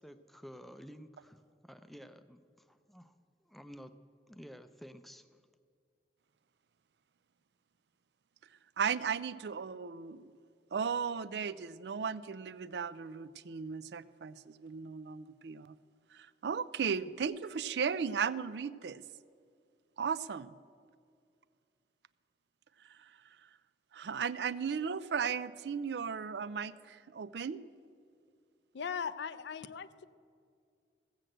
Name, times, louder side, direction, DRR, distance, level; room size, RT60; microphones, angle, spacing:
voice 1, 0.0-3.2 3.4-5.4, equal, ahead, 10 dB, 0.4 m, -52 dB
voice 2, 8.8-10.3 10.7-15.7 16.1-19.0 20.0-20.5 22.9-23.1 23.9-27.6, right 6 dB, 75° right, 17 dB, 0.4 m, -36 dB
voice 3, 28.7-30.0, left 6 dB, 80° left, 13 dB, 0.5 m, -39 dB
15.0 x 7.6 x 7.8 m, 2.3 s
head